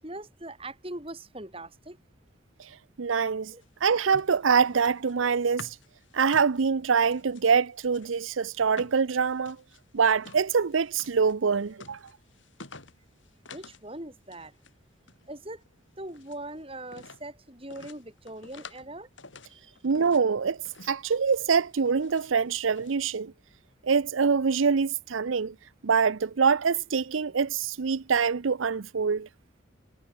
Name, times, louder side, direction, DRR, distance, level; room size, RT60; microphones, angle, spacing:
voice 1, 0.0-2.0 3.5-3.6 13.5-14.5 15.3-15.6 16.0-19.1 19.5-19.8, right 1 dB, 30° right, 7.4 m, -41 dB
voice 2, 3.0-3.5 3.8-5.8 6.1-9.6 9.9-12.0 19.8-23.3 23.8-25.5 25.8-29.3, right 5 dB, 90° right, 0.6 m, -25 dB
sound 1, 3.6-7.4 7.9-13.9 14.1-14.7 15.0-16.4 16.9-17.3 17.7-18.9 19.2-20.3 20.7-21.0 21.3-22.3 22.7-23.0, left 4 dB, 75° left, 4.8 m, -50 dB
head